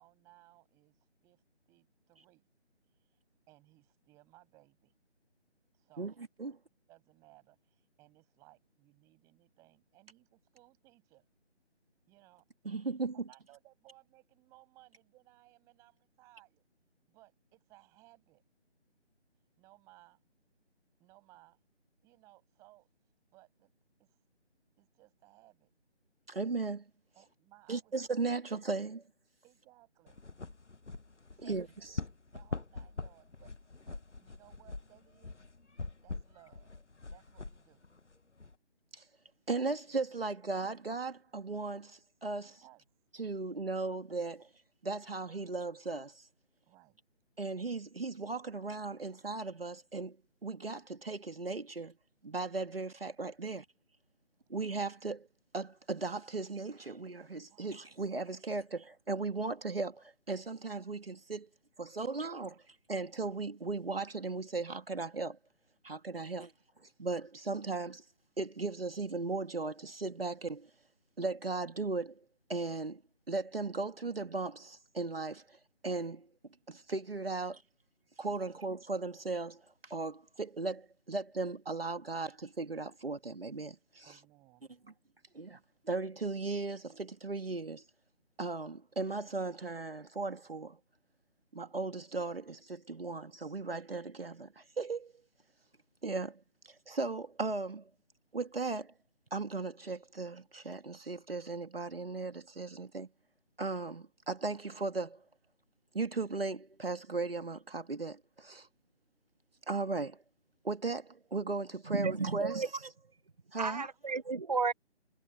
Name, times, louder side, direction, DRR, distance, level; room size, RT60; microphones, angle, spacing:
voice 1, 0.0-1.4 1.7-2.4 3.0-3.2 3.5-4.9 5.7-6.6 6.9-11.3 12.1-12.4 13.3-16.6 17.1-18.4 19.6-20.2 21.0-21.6 22.0-22.9 23.3-23.7 24.0-24.2 24.8-25.7 27.1-28.0 29.4-30.2 31.3-31.6 31.9-32.0 32.3-35.4 36.0-36.8 37.1-37.9 42.4-42.8 46.6-47.0 49.0-49.1 57.5-57.8 66.2-66.4 84.0-84.7, right 20 dB, 10° right, 6.4 m, -62 dB
voice 2, 12.6-13.3 26.3-26.9 27.7-29.0 31.4-31.7 38.9-39.1 39.5-42.5 43.2-44.5 44.8-46.3 47.4-50.2 50.4-51.9 52.2-53.7 54.5-55.3 55.5-61.5 61.8-65.4 65.8-66.5 67.0-68.0 68.4-70.7 71.2-72.2 72.5-73.0 73.3-76.3 76.7-77.6 78.2-84.1 85.3-85.6 85.9-87.8 88.4-90.8 91.5-95.1 96.0-97.9 98.3-98.9 99.3-103.1 103.6-105.2 105.9-108.7 109.7-110.2 110.6-112.9 113.5-113.9, right 3 dB, 55° right, 2.3 m, -37 dB
sound 1, 30.1-38.5, left 3 dB, 85° left, 1.2 m, -44 dB
voice 3, 111.9-112.7 113.6-114.7, right 4 dB, 35° right, 0.9 m, -32 dB
figure-of-eight pair, 160°, 35 cm